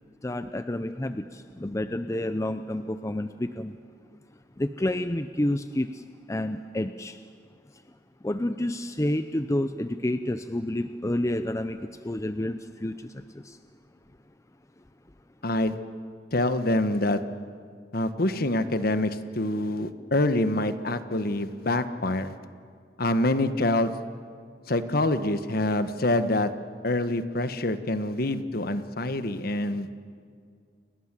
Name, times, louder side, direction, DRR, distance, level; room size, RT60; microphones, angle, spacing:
voice 1, 0.2-3.8 4.6-7.2 7.7-7.8 8.2-13.6, left 1 dB, 20° left, 10 dB, 0.6 m, -29 dB
voice 2, 15.4-15.8 16.3-17.2 17.9-22.3 23.0-23.9 24.7-26.5 26.8-29.9, left 1 dB, 60° left, 10 dB, 1.3 m, -26 dB
29.5 x 21.5 x 7.6 m, 2.2 s
head